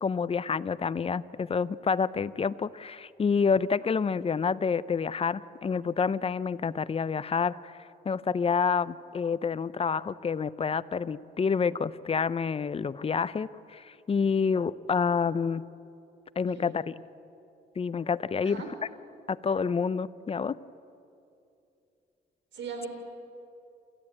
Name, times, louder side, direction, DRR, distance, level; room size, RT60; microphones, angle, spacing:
voice 1, 0.0-7.7 8.1-15.6 16.4-16.9 17.8-18.6 19.3-20.6, left 5 dB, 30° left, 17 dB, 0.6 m, -28 dB
voice 2, 16.4-16.8 18.4-18.7 22.5-22.9, right 5 dB, 65° right, 5 dB, 4.1 m, -38 dB
28.0 x 14.0 x 8.8 m, 2.6 s
cardioid pair, 90°, 20 cm